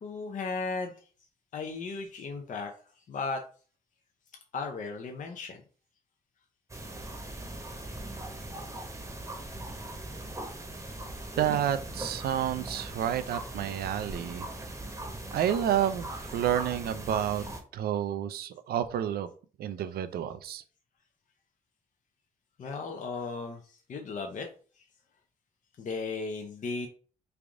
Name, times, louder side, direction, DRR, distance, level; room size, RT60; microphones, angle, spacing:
voice 1, 0.0-1.1 1.5-3.4 4.5-5.6 9.7-9.8 22.6-24.5 24.8-24.9 25.8-26.9, left 4 dB, 55° left, 0.6 m, -36 dB
sound 1, 6.7-17.6, right 2 dB, 20° right, 0.9 m, -40 dB
voice 2, 11.4-14.5 15.3-17.4 17.7-19.3 19.6-20.6, right 10 dB, 80° right, 0.4 m, -30 dB
3.3 x 2.5 x 3.5 m
cardioid pair, 80°, 16 cm